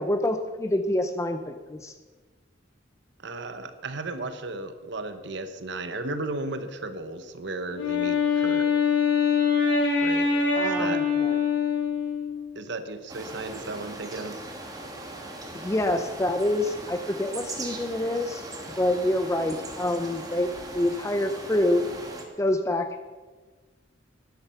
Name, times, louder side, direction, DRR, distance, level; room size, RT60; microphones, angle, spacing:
voice 1, 0.0-1.9 10.5-11.4 15.5-18.4 18.8-21.9 22.4-23.1, left 1 dB, 15° left, 8 dB, 0.6 m, -27 dB
voice 2, 3.2-8.7 10.0-10.3 10.6-11.0 12.5-14.4, right 2 dB, 65° right, 9 dB, 1.0 m, -35 dB
Wind instrument woodwind instrument, 7.7-12.4, left 5 dB, 75° left, 3.8 m, -24 dB
sound 1, 13.1-22.2, right 2 dB, 20° right, 1.8 m, -39 dB
12.5 x 10.5 x 5.8 m, 1.4 s
head